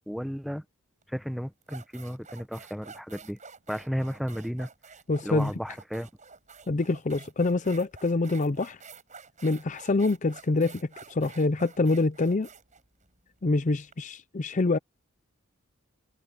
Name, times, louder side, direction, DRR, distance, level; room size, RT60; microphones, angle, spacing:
voice 1, 0.1-0.6 1.1-3.4 3.7-4.7 5.2-6.1, equal, ahead, 0.9 m, -33 dB
sound 1, 1.0-1.2 1.6-13.9, right 5 dB, 35° right, 7.7 m, -49 dB
voice 2, 5.1-5.5 6.7-8.8 9.4-12.5 13.4-14.8, left 3 dB, 35° left, 0.5 m, -26 dB
head